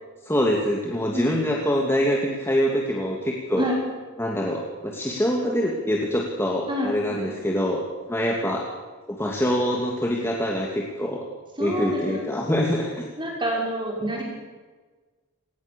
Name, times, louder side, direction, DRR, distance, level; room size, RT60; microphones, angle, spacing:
voice 1, 0.2-3.7 4.2-8.7 9.1-11.3 11.6-13.0, equal, 10° left, 0 dB, 2.6 m, -25 dB
voice 2, 1.1-1.5 3.6-3.8 6.7-7.3 11.6-12.5 13.2-14.2, equal, 20° right, -1 dB, 5.5 m, -28 dB
28.5 x 19.5 x 7.0 m, 1.4 s
head